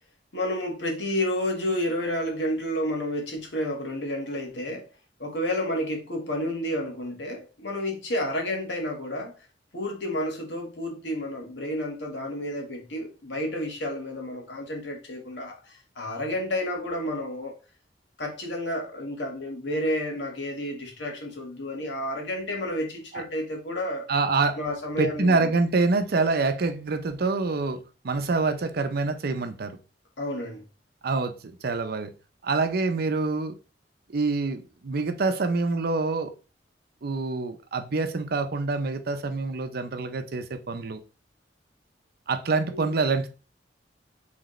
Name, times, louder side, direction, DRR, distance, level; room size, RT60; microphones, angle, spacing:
voice 1, 0.3-4.9 5.2-9.3 9.7-17.5 18.2-24.1 24.5-25.5 30.2-30.6 42.7-42.9, left 1 dB, 80° left, 1.5 m, -30 dB
voice 2, 24.1-24.6 25.0-29.8 31.0-32.1 32.4-33.5 34.1-36.3 37.0-41.0 42.3-43.3, right 3 dB, 60° right, 0.6 m, -26 dB
4.9 x 3.3 x 3.1 m
head